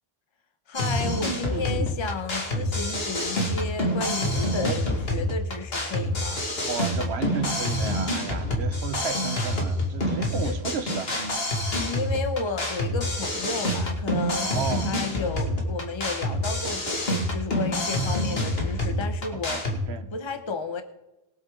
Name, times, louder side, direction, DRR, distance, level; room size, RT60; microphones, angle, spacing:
sound 1, 0.7-19.8, left 1 dB, 70° left, 2.3 m, -27 dB
voice 1, 0.7-6.4 10.4-10.6 11.8-20.8, left 4 dB, 30° left, 0.9 m, -33 dB
voice 2, 1.5-1.9 4.4-4.8 6.6-11.4 14.4-14.9 19.5-19.6 19.9-20.1, right 6 dB, 85° right, 1.2 m, -33 dB
21.5 x 7.9 x 3.8 m
omnidirectional pair, 1.0 m